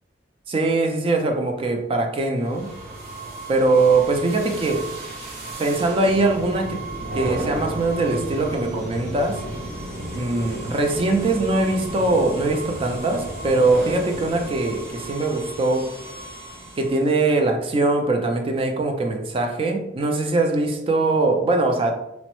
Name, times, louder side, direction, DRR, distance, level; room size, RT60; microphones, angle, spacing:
voice 1, 0.5-2.7 3.5-4.8 5.6-6.8 7.1-9.4 10.1-15.8 16.8-21.9, right 2 dB, 30° right, 3 dB, 0.3 m, -21 dB
sound 1, 2.4-17.2, right 2 dB, 50° right, 0.9 m, -33 dB
3.0 x 2.0 x 2.9 m, 0.86 s
head